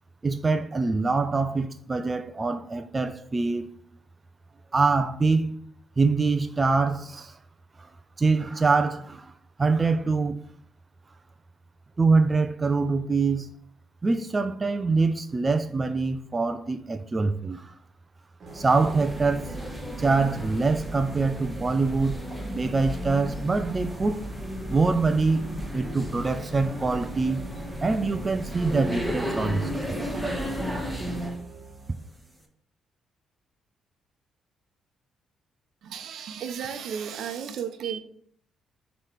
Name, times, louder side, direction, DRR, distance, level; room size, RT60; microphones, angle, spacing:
voice 1, 0.2-3.7 4.7-5.6 6.0-7.4 7.8-7.9 8.2-9.3 9.6-10.4 12.0-13.6 14.0-17.7 18.5-19.5 20.0-22.2 22.5-24.2 24.7-25.4 25.7-30.0, right 3 dB, 25° right, 0.4 m, -24 dB
Musical instrument, 18.4-31.9, right 3 dB, 50° right, 1.2 m, -49 dB
sound 1, 18.5-31.4, equal, 5° right, 1.2 m, -34 dB
voice 2, 35.8-38.0, right 8 dB, 70° right, 0.7 m, -34 dB
7.4 x 3.1 x 5.1 m
cardioid pair, 90°, 0 cm